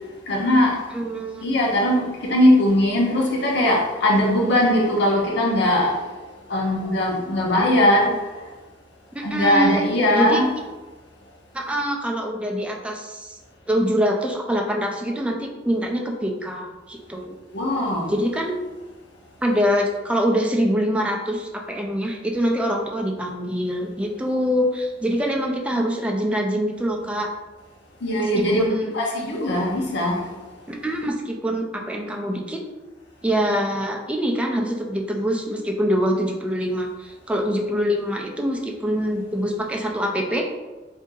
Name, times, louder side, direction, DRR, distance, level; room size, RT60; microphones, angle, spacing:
voice 1, 0.3-0.8 1.4-6.1 6.5-8.3 9.2-10.5 17.5-18.1 28.0-28.7 28.9-30.3, left 1 dB, 65° left, -2 dB, 0.8 m, -20 dB
voice 2, 0.9-1.4 9.1-9.9 10.1-10.4 11.5-13.4 13.7-17.4 18.1-18.6 19.4-27.3 28.4-28.9 30.7-32.6 33.2-40.5, equal, 5° right, 0 dB, 0.4 m, -24 dB
2.7 x 2.6 x 3.7 m, 1.2 s
head